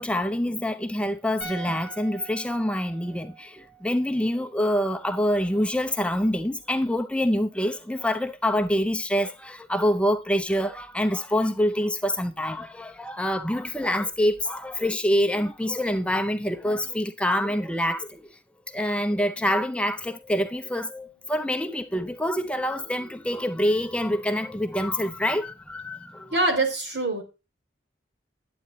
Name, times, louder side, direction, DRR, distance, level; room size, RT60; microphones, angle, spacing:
voice 1, 0.0-18.4 18.7-26.4, equal, 5° left, 0.5 m, -26 dB
sound 1, 1.4-4.6 4.9-5.0, right 4 dB, 40° right, 2.6 m, -44 dB
voice 2, 26.3-27.2, right 2 dB, 70° right, 3.5 m, -24 dB
12.0 x 8.7 x 3.9 m
head